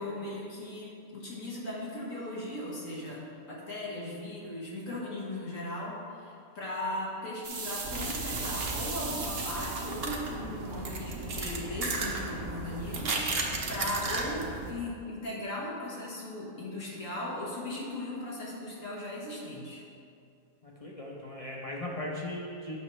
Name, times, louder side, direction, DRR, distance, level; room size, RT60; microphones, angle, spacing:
voice 1, 0.0-19.8, left 1 dB, 85° left, -5 dB, 1.8 m, -38 dB
sound 1, 7.4-10.2, right 4 dB, 75° right, 1.3 m, -37 dB
sound 2, 7.8-14.7, right 3 dB, 55° right, 1.0 m, -35 dB
voice 2, 20.6-22.8, left 1 dB, 35° left, -3 dB, 0.7 m, -38 dB
8.1 x 6.0 x 3.2 m, 2.5 s
omnidirectional pair, 1.3 m